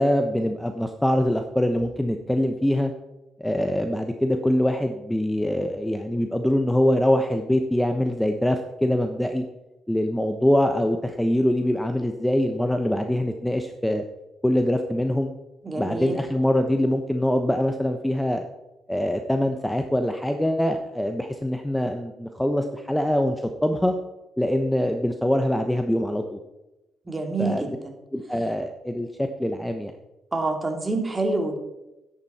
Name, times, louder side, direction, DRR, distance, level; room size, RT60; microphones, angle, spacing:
voice 1, 0.0-2.9 3.4-9.4 9.9-14.0 14.4-15.3 15.8-18.4 18.9-23.4 23.6-23.9 24.4-26.4 27.4-27.6 28.1-29.9, left 1 dB, 5° left, 6 dB, 1.1 m, -23 dB
voice 2, 15.6-16.2 27.1-27.9 30.3-31.6, right 2 dB, 20° right, 3 dB, 2.7 m, -27 dB
13.0 x 11.0 x 4.3 m, 0.97 s
cardioid pair, 90°, 0 cm